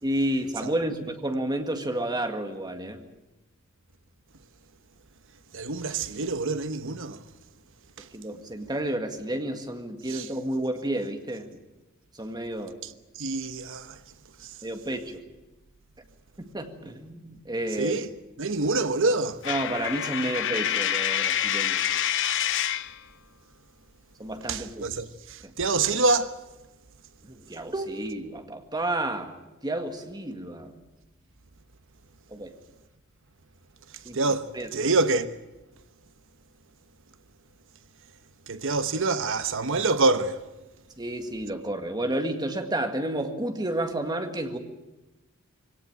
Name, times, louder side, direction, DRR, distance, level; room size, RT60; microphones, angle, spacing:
voice 1, 0.0-3.0 8.0-11.6 12.1-12.8 14.6-15.2 16.4-18.0 19.5-21.8 24.2-24.9 25.4-25.5 27.2-29.3 29.6-30.7 32.3-32.6 34.0-34.2 34.5-34.7 41.0-44.6, right 1 dB, 20° right, 1.9 m, -31 dB
voice 2, 5.5-7.2 8.0-8.1 10.1-10.3 12.8-14.0 14.4-14.6 17.8-18.1 18.4-19.4 24.5-26.4 33.9-35.4 38.5-40.4, right 3 dB, 65° right, 1.1 m, -26 dB
Coin (dropping), 19.4-23.0, left 10 dB, 60° left, 0.8 m, -27 dB
23.0 x 17.5 x 9.0 m
head